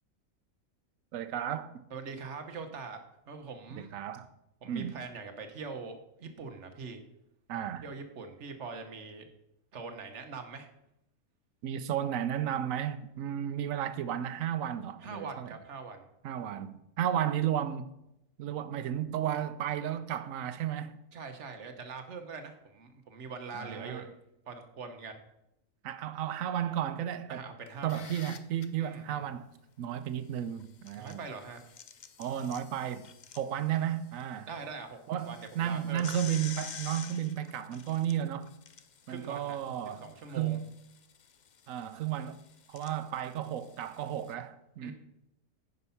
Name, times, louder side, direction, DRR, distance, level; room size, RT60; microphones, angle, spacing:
voice 1, 1.1-1.7 3.8-4.3 4.7-5.0 7.5-7.9 11.6-15.5 16.2-17.9 18.4-21.0 23.5-24.0 25.8-27.5 27.8-29.5 29.8-31.2 32.2-33.1 33.3-34.5 35.1-38.5 39.1-40.0 40.3-40.7 41.7-42.4 42.7-44.9, right 10 dB, 85° right, 1.0 m, -33 dB
voice 2, 1.9-3.0 3.3-3.9 4.6-7.0 7.5-9.3 9.7-10.7 15.0-16.1 21.1-24.1 24.5-25.2 27.3-28.0 28.8-29.2 31.0-31.6 34.5-35.0 35.3-36.1 39.1-39.6 40.0-40.6 44.8-44.9, right 4 dB, 60° right, 1.3 m, -42 dB
sound 1, 27.7-28.7 30.6-34.2 34.6-34.7 35.1-44.3, left 7 dB, 50° left, 0.5 m, -49 dB
9.7 x 5.4 x 5.6 m
omnidirectional pair, 1.4 m